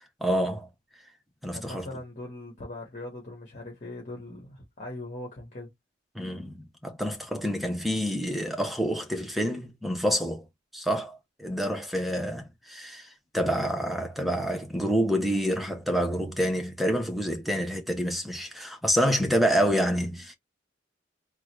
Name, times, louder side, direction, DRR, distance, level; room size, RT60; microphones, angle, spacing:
voice 1, 0.2-0.7 1.4-1.9 6.1-10.5 10.7-13.1 13.3-20.3, equal, ahead, 0.8 m, -27 dB
voice 2, 1.5-5.7, left 2 dB, 40° left, 1.5 m, -40 dB
3.9 x 2.3 x 3.0 m
head